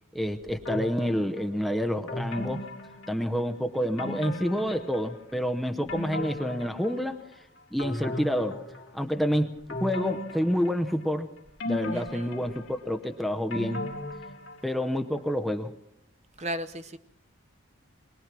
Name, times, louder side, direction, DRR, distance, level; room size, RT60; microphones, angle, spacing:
voice 1, 0.1-2.6 3.1-7.2 7.7-8.6 8.9-11.3 11.6-13.9 14.6-15.7, equal, ahead, 4 dB, 0.8 m, -28 dB
sound 1, 0.7-1.5 2.1-3.5 4.0-5.3 5.7-7.3 7.8-9.1 9.7-11.1 11.6-14.9 15.2-15.3, left 1 dB, 60° left, 2.7 m, -37 dB
voice 2, 11.9-12.3 16.4-17.0, right 1 dB, 30° right, 9 dB, 0.8 m, -35 dB
22.5 x 19.0 x 6.1 m, 0.76 s
head